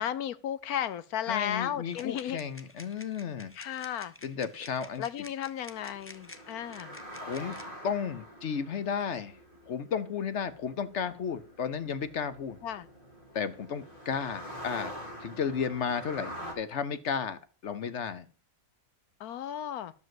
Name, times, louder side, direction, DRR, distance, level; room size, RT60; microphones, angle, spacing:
voice 1, 0.0-2.4 3.6-4.1 5.0-7.0 12.6-12.9 19.2-19.9, left 10 dB, 85° left, 1.3 m, -34 dB
voice 2, 1.3-3.5 4.2-5.0 7.2-7.6 7.8-9.4 9.7-12.6 13.3-14.9 15.2-18.2, left 7 dB, 55° left, 1.0 m, -33 dB
sound 1, 1.9-7.7, left 2 dB, 20° left, 0.4 m, -51 dB
sound 2, 5.7-16.5, equal, 35° left, 2.9 m, -46 dB
11.5 x 5.1 x 7.7 m
omnidirectional pair, 1.5 m